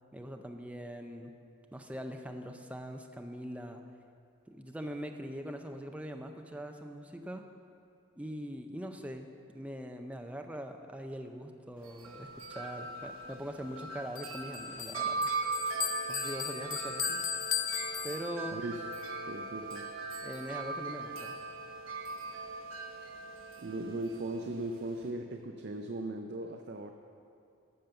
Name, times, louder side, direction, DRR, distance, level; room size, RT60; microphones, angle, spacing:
voice 1, 0.1-1.3 1.7-3.8 4.5-7.4 8.2-15.3 16.1-17.3 18.0-18.6 20.2-21.4, equal, 5° right, 4 dB, 0.5 m, -42 dB
Wind chime, 11.8-25.1, right 3 dB, 75° right, 1.1 m, -39 dB
Bell, 14.2-18.7, left 10 dB, 75° left, 0.6 m, -37 dB
voice 2, 18.5-18.8 19.3-19.9 23.6-26.9, right 2 dB, 55° right, 4 dB, 0.5 m, -38 dB
13.5 x 5.2 x 6.9 m, 2.5 s
head